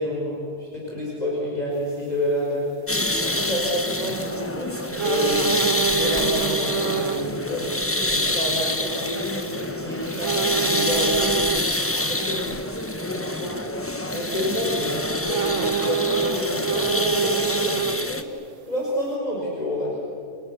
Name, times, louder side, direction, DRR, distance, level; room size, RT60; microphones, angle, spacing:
voice 1, 0.0-2.6 3.2-5.5 5.9-7.7 8.1-11.3 12.0-12.4 13.1-13.6 14.1-18.3 18.7-20.0, left 1 dB, 35° left, -4 dB, 6.0 m, -28 dB
sound 1, 2.9-18.2, left 1 dB, 10° left, 1.2 m, -26 dB
sound 2, 5.0-7.3 7.7-7.8 10.2-11.6 15.2-18.3 18.7-18.8, right 7 dB, 85° right, 1.2 m, -26 dB
29.5 x 28.5 x 7.0 m, 2.4 s
omnidirectional pair, 1.2 m